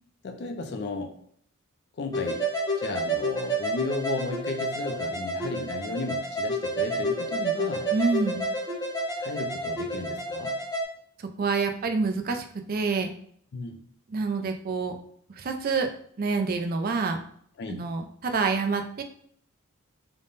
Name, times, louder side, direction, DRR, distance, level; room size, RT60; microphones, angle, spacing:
voice 1, 0.2-1.1 2.0-2.5 2.8-7.9 9.2-10.6 13.5-13.8 17.6-17.8, left 2 dB, 50° left, 5 dB, 0.4 m, -34 dB
sound 1, 2.1-10.8, right 1 dB, 15° left, 0.8 m, -29 dB
voice 2, 7.9-8.4 11.2-13.1 14.1-14.9 15.3-15.9 16.2-17.2 17.7-19.0, right 4 dB, 40° right, 5 dB, 0.4 m, -27 dB
3.4 x 2.1 x 3.9 m, 0.62 s
head